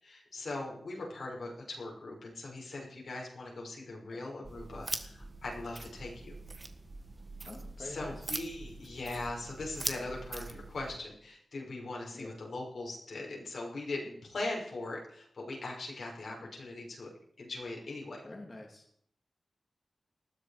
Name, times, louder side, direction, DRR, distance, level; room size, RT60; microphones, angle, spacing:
voice 1, 0.0-6.4 7.8-17.1 17.4-18.2, left 2 dB, 75° left, -2 dB, 6.3 m, -40 dB
sound 1, 4.4-11.0, right 2 dB, 30° right, 1.6 m, -42 dB
voice 2, 7.4-8.2 12.1-12.3 18.2-18.8, left 2 dB, 35° left, 0 dB, 2.8 m, -46 dB
20.0 x 14.0 x 5.1 m, 0.68 s
wide cardioid pair, 125°, 0 cm